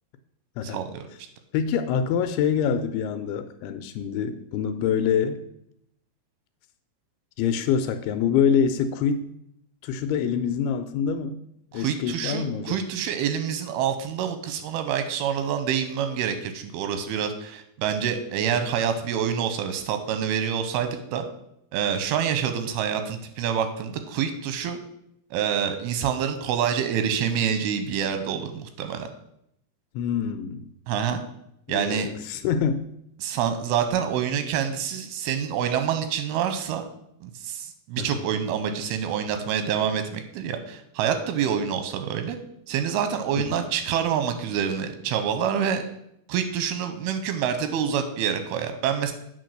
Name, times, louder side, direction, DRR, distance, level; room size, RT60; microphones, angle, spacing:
voice 1, 0.6-1.1 11.7-21.2 21.7-24.8 25.3-29.1 30.9-31.2 31.7-32.1 33.2-36.8 37.2-42.4 42.7-45.8 46.3-49.1, right 8 dB, 85° right, 8 dB, 2.7 m, -27 dB
voice 2, 1.5-5.4 7.4-9.2 9.8-11.4 11.7-12.8 30.0-30.6 31.7-32.8 38.0-38.3 43.4-43.7, left 7 dB, 85° left, 9 dB, 2.5 m, -25 dB
8.3 x 4.5 x 6.5 m, 0.75 s
omnidirectional pair, 4.5 m